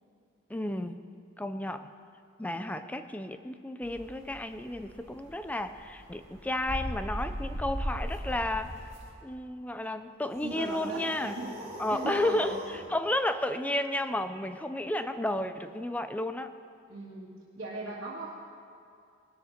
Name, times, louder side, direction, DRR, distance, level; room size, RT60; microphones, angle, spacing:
voice 1, 0.5-1.0 1.4-1.9 2.4-8.8 9.2-11.3 11.8-16.5, left 1 dB, 5° left, 9 dB, 0.4 m, -32 dB
sound 1, 3.8-9.1, equal, 65° right, 2.1 m, -37 dB
sound 2, 10.3-12.9, equal, 45° right, 3.0 m, -42 dB
voice 2, 10.4-11.5 11.9-12.6 16.9-17.3 17.6-18.3, right 2 dB, 80° right, -9 dB, 2.3 m, -38 dB
20.5 x 12.5 x 2.9 m, 2.4 s
head